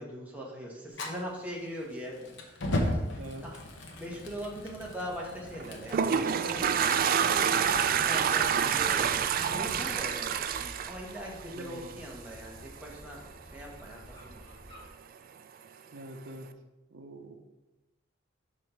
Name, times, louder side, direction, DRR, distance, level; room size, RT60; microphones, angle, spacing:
voice 1, 0.0-3.5 4.0-7.6 7.9-13.2 13.5-14.4, equal, 10° right, -3 dB, 1.2 m, -41 dB
Fire, 0.9-9.9, left 1 dB, 70° left, 1.0 m, -38 dB
voice 2, 3.2-3.5 11.5-12.1 15.9-16.5 16.9-17.3, right 1 dB, 80° right, 4 dB, 0.7 m, -45 dB
Toilet flush, 5.6-11.9, right 8 dB, 50° right, 0.3 m, -27 dB
sound 1, 8.1-14.9, equal, 25° left, 1.6 m, -52 dB
4.9 x 4.2 x 5.6 m, 1.1 s
head